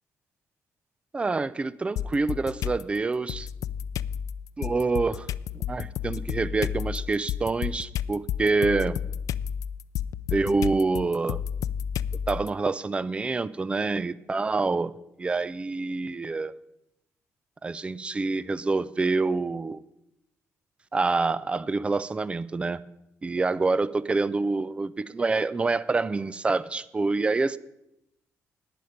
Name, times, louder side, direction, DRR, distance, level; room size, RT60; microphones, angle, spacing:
voice 1, 1.1-3.5 4.6-5.3 5.5-9.0 10.3-11.4 12.3-14.9 15.2-16.5 17.6-19.8 20.9-22.8 23.2-27.6, right 3 dB, 20° right, 18 dB, 0.4 m, -26 dB
sound 1, 2.0-2.8 3.3-12.5, left 9 dB, 75° left, 0.3 m, -31 dB
11.0 x 9.4 x 5.2 m, 0.84 s
cardioid pair, 120°, 6 cm